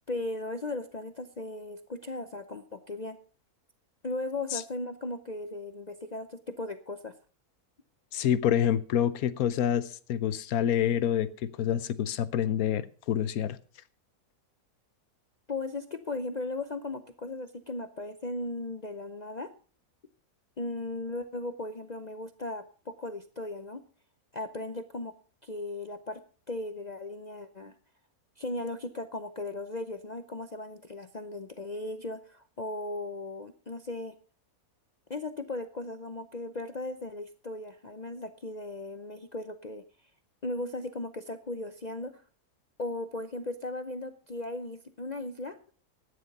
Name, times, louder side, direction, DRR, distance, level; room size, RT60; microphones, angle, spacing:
voice 1, 0.1-3.2 4.0-7.1 15.5-19.5 20.6-23.8 24.3-25.1 25.4-26.2 26.5-27.7 28.4-34.1 35.1-39.8 40.4-42.2 42.8-45.6, left 2 dB, 45° left, 0.5 m, -37 dB
voice 2, 8.1-13.6, left 9 dB, 70° left, 1.2 m, -27 dB
13.0 x 9.9 x 5.3 m
omnidirectional pair, 1.7 m